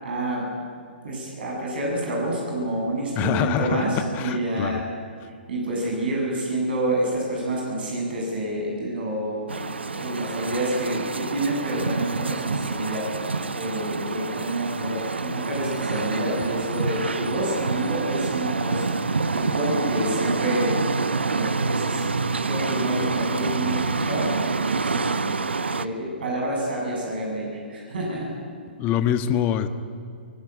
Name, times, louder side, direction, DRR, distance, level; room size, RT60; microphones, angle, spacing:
voice 1, 0.0-0.5 1.0-4.8 5.5-9.4 9.9-13.1 13.5-18.8 19.3-20.8 21.2-22.1 22.4-25.1 25.7-28.3, right 1 dB, 60° right, -1 dB, 7.8 m, -28 dB
voice 2, 3.1-3.8 4.1-4.8 28.8-29.7, left 9 dB, 30° left, 10 dB, 1.5 m, -24 dB
sound 1, 9.5-25.9, right 4 dB, 80° right, 1.1 m, -27 dB
23.0 x 19.0 x 9.7 m, 2.4 s
figure-of-eight pair, 120°, 6 cm